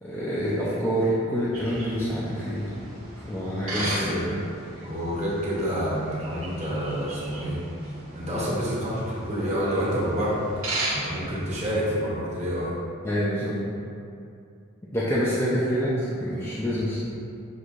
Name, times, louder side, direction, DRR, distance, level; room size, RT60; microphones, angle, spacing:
voice 1, 0.0-2.8 3.2-4.2 13.0-13.6 14.9-17.1, equal, 10° left, -9 dB, 0.4 m, -27 dB
sound 1, 1.5-11.8, right 1 dB, 80° right, 1.0 m, -37 dB
voice 2, 3.7-4.3 4.8-7.6 8.1-10.4 10.9-12.7, equal, 30° right, -7 dB, 0.9 m, -28 dB
6.3 x 2.7 x 2.5 m, 2.5 s
head